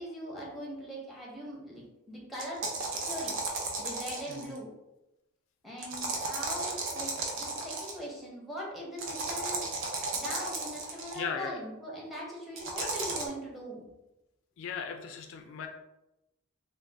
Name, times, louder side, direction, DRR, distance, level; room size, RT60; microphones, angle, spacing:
voice 1, 0.0-2.6 3.0-3.3 3.8-4.7 5.6-9.7 10.1-13.8, equal, ahead, -4 dB, 0.7 m, -41 dB
sound 1, 2.4-4.6 5.8-8.0 9.0-11.2 12.6-13.3, right 3 dB, 65° right, 0.6 m, -34 dB
voice 2, 11.1-11.6 12.8-12.9 14.6-15.7, left 6 dB, 65° left, 4 dB, 0.3 m, -37 dB
2.5 x 2.2 x 3.3 m, 0.94 s
head